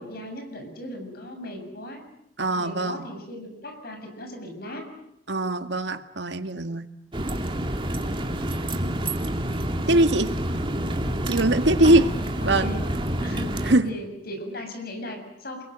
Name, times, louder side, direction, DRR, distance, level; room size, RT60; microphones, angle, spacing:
voice 1, 0.0-2.0 2.6-4.9 11.8-12.0 12.4-12.8 13.2-15.6, left 1 dB, 60° left, 5 dB, 7.4 m, -37 dB
voice 2, 2.4-3.1 5.3-6.9 9.9-10.3 11.3-12.1 12.4-12.7 13.7-14.0, right 1 dB, 85° right, 8 dB, 1.9 m, -21 dB
sound 1, 7.1-13.8, right 1 dB, 30° right, 2.4 m, -28 dB
28.0 x 22.0 x 9.0 m, 0.79 s
head